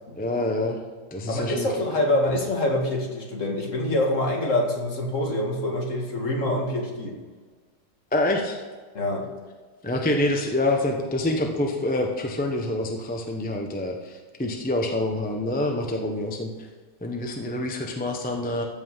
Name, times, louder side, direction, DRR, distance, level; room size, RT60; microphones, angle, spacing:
voice 1, 0.2-0.8 1.1-1.7 8.1-8.6 9.8-16.5 17.0-18.6, left 1 dB, 10° left, 2 dB, 0.6 m, -26 dB
voice 2, 1.3-7.2 8.9-9.3, left 1 dB, 45° left, 0 dB, 2.1 m, -25 dB
14.5 x 5.6 x 5.7 m, 1.4 s
omnidirectional pair, 2.0 m